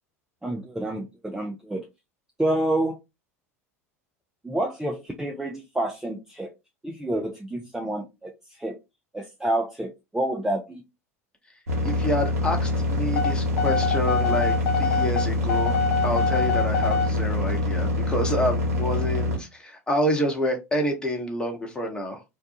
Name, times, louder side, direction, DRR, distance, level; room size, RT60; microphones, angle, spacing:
voice 1, 0.4-1.9 2.4-3.0 4.4-6.5 6.8-8.7 9.1-10.8, right 1 dB, 5° right, 1 dB, 0.5 m, -28 dB
sound 1, 11.7-19.4, left 2 dB, 75° right, 0.8 m, -25 dB
voice 2, 11.8-22.2, equal, 10° left, 1 dB, 0.9 m, -28 dB
sound 2, 13.2-17.1, left 4 dB, 60° left, 0.4 m, -25 dB
2.6 x 2.2 x 2.6 m, 0.23 s
figure-of-eight pair, 80°, 8 cm